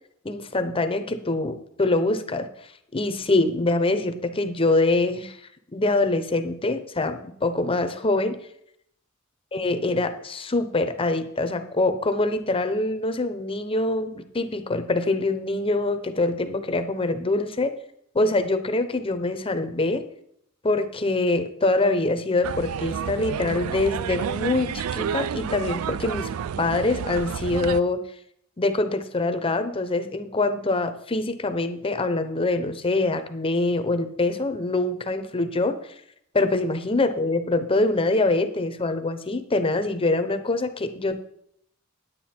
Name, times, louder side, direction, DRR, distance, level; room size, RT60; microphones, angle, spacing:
voice 1, 0.2-2.5 2.9-5.4 5.7-8.4 9.5-17.7 18.1-20.0 20.6-26.3 26.6-28.0 28.6-35.8 36.3-41.2, left 2 dB, 25° left, 9 dB, 0.7 m, -24 dB
sound 1, 22.4-27.8, right 8 dB, 90° right, 0.4 m, -30 dB
9.7 x 9.4 x 4.3 m, 0.71 s
head